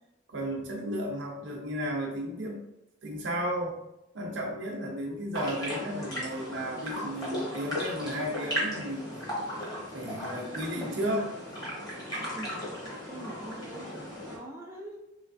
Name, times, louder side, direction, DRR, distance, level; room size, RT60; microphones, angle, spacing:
voice 1, 0.3-2.6 3.0-3.8 4.1-9.2 9.9-11.3, equal, 70° right, 1 dB, 0.7 m, -33 dB
sound 1, 5.3-14.4, equal, 20° left, 1.1 m, -36 dB
voice 2, 12.2-12.7 13.1-15.0, right 1 dB, 15° right, -2 dB, 0.4 m, -44 dB
3.2 x 3.2 x 2.5 m, 0.87 s
head